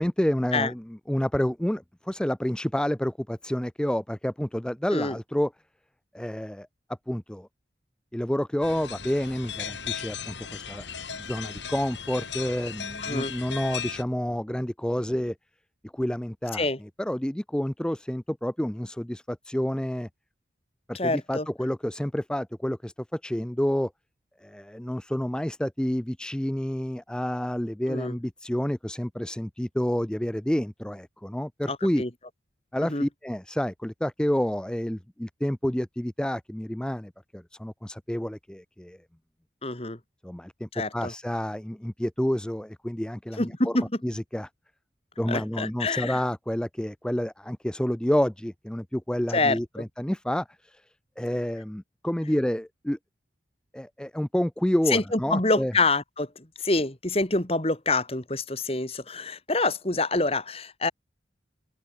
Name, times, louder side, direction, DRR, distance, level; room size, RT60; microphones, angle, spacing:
voice 1, 0.0-5.5 6.1-6.7 7.1-7.5 8.1-10.9 11.1-15.4 15.9-20.1 20.9-23.9 24.4-32.0 32.7-39.0 40.2-44.5 45.2-50.8 51.2-53.0 53.7-55.7, equal, 5° left, 0.4 m, -29 dB
sound 1, 8.6-14.0, left 7 dB, 80° left, 4.8 m, -37 dB
voice 2, 13.0-13.3 16.5-16.8 20.9-21.5 27.9-28.2 31.7-32.1 32.8-33.1 39.6-40.0 40.7-41.1 43.4-43.9 45.3-46.2 49.3-49.9 54.9-60.9, left 3 dB, 35° left, 2.5 m, -27 dB
head